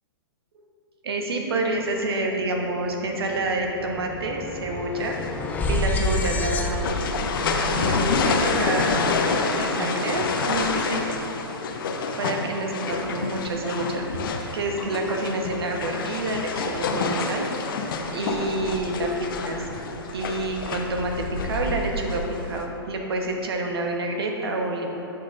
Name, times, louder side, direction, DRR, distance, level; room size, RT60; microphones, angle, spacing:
voice 1, 1.0-5.2 5.7-7.0 7.7-9.2 9.5-11.2 12.2-14.1 14.5-17.4 18.1-19.7 20.1-21.1 21.4-24.9, right 2 dB, 75° right, 2 dB, 1.1 m, -28 dB
sound 1, 2.4-2.6 2.9-9.1, left 2 dB, 10° left, 0.3 m, -30 dB
sound 2, 5.0-22.6, left 4 dB, 60° left, 0.7 m, -28 dB
10.0 x 6.0 x 2.5 m, 3.0 s
hypercardioid pair, 130°, 13 cm